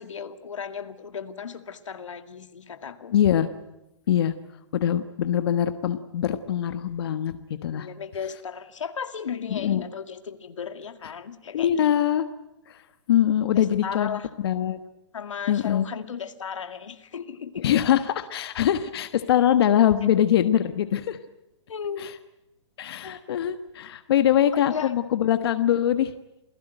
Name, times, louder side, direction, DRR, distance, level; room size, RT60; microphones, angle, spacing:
voice 1, 0.0-3.2 7.7-11.9 13.5-14.3 15.1-17.7 21.7-22.1 23.0-23.2 24.5-24.9, left 7 dB, 90° left, 8 dB, 2.2 m, -35 dB
voice 2, 3.1-3.5 4.1-4.3 4.7-7.4 7.6-7.9 9.5-9.8 11.5-12.2 12.7-12.8 13.1-14.8 15.5-15.9 17.6-21.2 22.8-26.1, left 10 dB, 55° left, 10 dB, 1.3 m, -23 dB
28.0 x 17.0 x 9.1 m, 0.89 s
hypercardioid pair, 160°, 16 cm